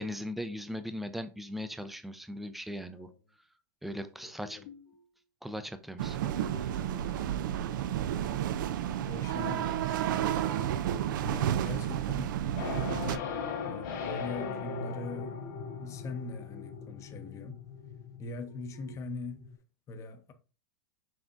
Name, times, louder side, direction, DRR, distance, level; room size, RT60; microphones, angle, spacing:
voice 1, 0.0-3.5 3.8-4.6 5.4-6.4, equal, ahead, 0.5 m, -39 dB
sound 1, 3.9-5.1 6.4-7.4 9.2-11.8 12.9-14.0 14.9-17.3 17.6-17.7 18.5-19.0, left 3 dB, 80° left, 1.4 m, -52 dB
sound 2, 6.0-13.2, right 11 dB, 70° right, 0.4 m, -31 dB
voice 2, 9.1-11.0 11.3-13.1 13.7-15.4 15.8-17.6 18.2-19.6 19.9-20.3, left 3 dB, 30° left, 0.8 m, -42 dB
sound 3, 12.6-19.6, left 5 dB, 60° left, 1.9 m, -39 dB
6.1 x 3.3 x 2.6 m
hypercardioid pair, 125°, 11 cm